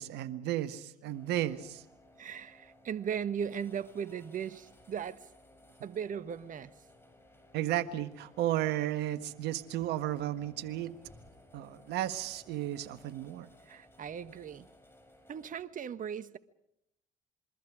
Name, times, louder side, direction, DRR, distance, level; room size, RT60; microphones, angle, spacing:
voice 1, 0.0-1.8 7.5-10.9 11.5-13.5, right 13 dB, 65° right, 1.7 m, -33 dB
sound 1, 1.1-15.6, left 1 dB, 10° left, 6.7 m, -60 dB
voice 2, 2.2-5.3 5.8-6.7 13.6-14.7 15.3-16.4, right 8 dB, 45° right, 1.4 m, -38 dB
27.0 x 23.0 x 5.0 m
hypercardioid pair, 60°, 18 cm